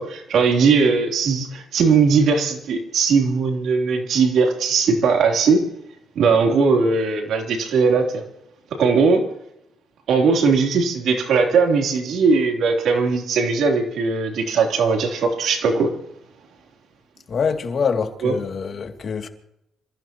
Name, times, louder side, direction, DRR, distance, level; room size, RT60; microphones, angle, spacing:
voice 1, 0.0-5.6 6.1-8.2 8.7-9.3 10.1-15.9 18.2-18.3, right 5 dB, 75° right, 3.3 m, -19 dB
voice 2, 17.3-19.3, left 6 dB, 50° left, 2.6 m, -25 dB
27.5 x 15.0 x 3.0 m
cardioid pair, 90°, 0 cm